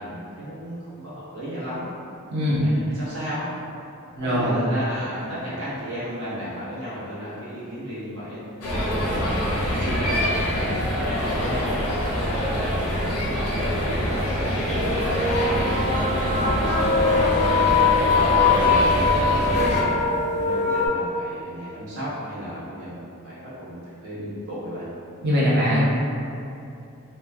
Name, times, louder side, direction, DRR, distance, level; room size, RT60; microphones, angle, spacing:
voice 1, 0.0-1.8 2.5-3.5 4.2-8.4 8.8-9.3 9.7-11.7 12.3-15.1 15.4-19.0 19.4-24.9, equal, 70° right, -11 dB, 1.0 m, -35 dB
voice 2, 2.3-2.6 4.2-4.6 25.2-25.8, equal, 45° right, -8 dB, 0.6 m, -21 dB
sound 1, 8.6-19.8, equal, 90° left, 0.7 m, -24 dB
sound 2, 12.9-13.0 13.8-13.9 14.5-20.9, left 4 dB, 30° left, 0.4 m, -22 dB
3.0 x 2.2 x 3.3 m, 2.7 s
head